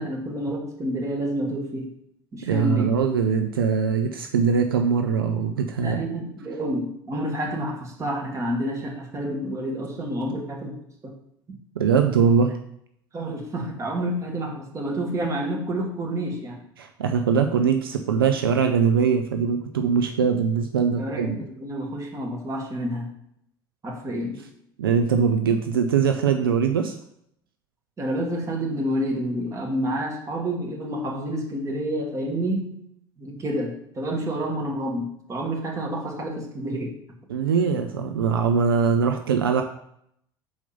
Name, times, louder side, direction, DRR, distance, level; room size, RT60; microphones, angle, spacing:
voice 1, 0.0-1.9 2.3-3.0 5.8-11.1 13.1-16.6 21.0-23.1 23.8-24.4 28.0-32.8 33.2-37.0, right 1 dB, 25° right, 1 dB, 1.6 m, -29 dB
voice 2, 2.4-6.0 11.8-12.6 16.8-21.4 24.8-27.0 37.3-39.6, right 6 dB, 75° right, 6 dB, 0.5 m, -22 dB
5.5 x 4.5 x 5.2 m, 0.73 s
figure-of-eight pair, 65°, 12 cm